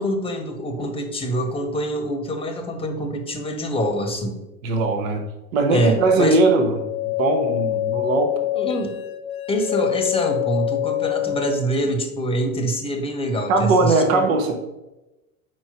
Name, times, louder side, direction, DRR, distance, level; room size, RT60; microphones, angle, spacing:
voice 1, 0.0-4.4 5.7-6.4 8.5-9.0 9.5-14.2, equal, 10° left, 5 dB, 1.0 m, -25 dB
voice 2, 4.6-5.2 5.5-6.8 7.2-8.3 13.5-14.6, right 3 dB, 60° right, 5 dB, 1.1 m, -19 dB
sound 1, 6.7-11.7, left 17 dB, 75° left, 0.9 m, -25 dB
4.6 x 4.5 x 5.7 m, 0.99 s
hypercardioid pair, 90°, 44 cm